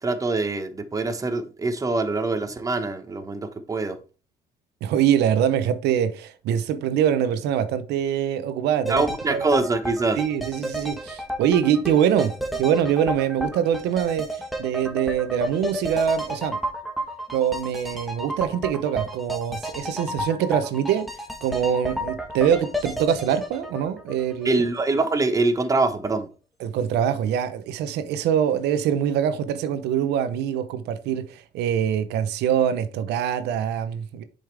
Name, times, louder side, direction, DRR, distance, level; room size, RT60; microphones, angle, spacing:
voice 1, 0.0-4.0 8.9-10.2 24.4-26.3, right 3 dB, 20° right, 1.0 m, -24 dB
voice 2, 4.8-9.0 9.3-9.5 10.2-12.3 12.6-16.6 17.3-21.1 21.4-24.6 26.6-34.2, right 9 dB, 80° right, 0.8 m, -24 dB
sound 1, 8.9-24.8 25.1-25.2, equal, ahead, 1.4 m, -32 dB
7.3 x 5.2 x 3.3 m
cardioid pair, 110°, 17 cm